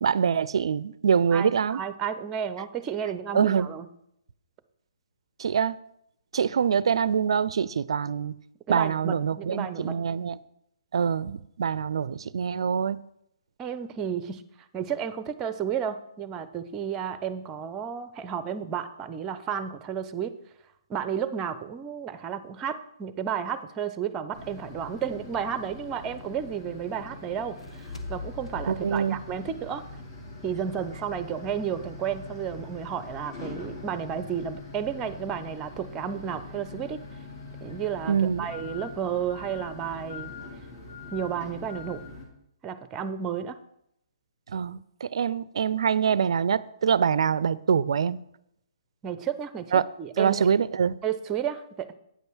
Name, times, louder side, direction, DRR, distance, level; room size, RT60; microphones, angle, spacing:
voice 1, 0.0-1.8 3.3-3.7 5.4-5.8 6.3-8.3 8.7-10.4 10.9-13.0 28.7-29.2 38.1-38.5 44.5-48.2 49.7-49.8 50.2-51.0, right 7 dB, 65° right, 0.4 m, -24 dB
voice 2, 1.3-3.9 8.7-10.0 13.6-20.3 20.9-29.8 30.4-37.0 37.6-40.3 41.1-42.0 42.6-43.6 49.0-50.5 51.0-51.9, right 8 dB, 20° right, 0.6 m, -32 dB
sound 1, 24.3-42.3, left 3 dB, 40° left, 2.8 m, -42 dB
sound 2, 27.3-30.7, left 4 dB, 85° left, 1.4 m, -43 dB
8.9 x 5.4 x 6.2 m
hypercardioid pair, 135°, 3 cm